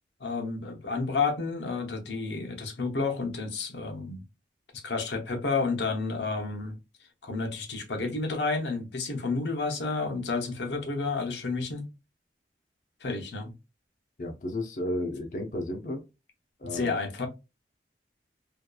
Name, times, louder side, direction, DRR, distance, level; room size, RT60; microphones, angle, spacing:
voice 1, 0.2-4.2 4.8-6.7 7.2-11.8 13.0-13.5 16.6-17.3, left 4 dB, 80° left, 0.7 m, -30 dB
voice 2, 14.2-16.0 16.6-16.9, left 1 dB, 45° left, 0.4 m, -33 dB
2.7 x 2.3 x 2.2 m
head